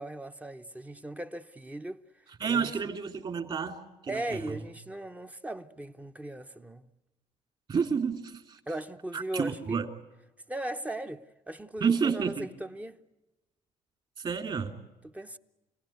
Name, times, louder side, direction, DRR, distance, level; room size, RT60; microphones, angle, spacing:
voice 1, 0.0-2.0 2.5-2.7 4.1-6.9 8.7-9.8 10.5-13.0 15.0-15.4, right 1 dB, 10° right, 0.9 m, -38 dB
voice 2, 2.4-4.6 7.7-8.6 9.1-9.9 11.8-12.5 14.2-14.7, right 6 dB, 40° right, 3.2 m, -30 dB
29.0 x 18.0 x 9.4 m
cardioid pair, 115°, 13 cm